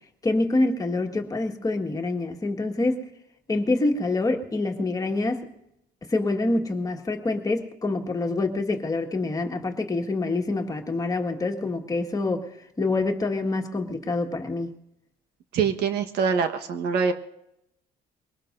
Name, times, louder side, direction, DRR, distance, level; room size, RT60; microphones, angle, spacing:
voice 1, 0.2-3.0 3.5-5.5 6.1-12.5 12.8-14.7, left 2 dB, 20° left, 3 dB, 1.7 m, -26 dB
voice 2, 15.5-17.1, right 6 dB, 75° right, 6 dB, 1.3 m, -24 dB
23.0 x 19.0 x 2.6 m, 0.83 s
cardioid pair, 110°, 17 cm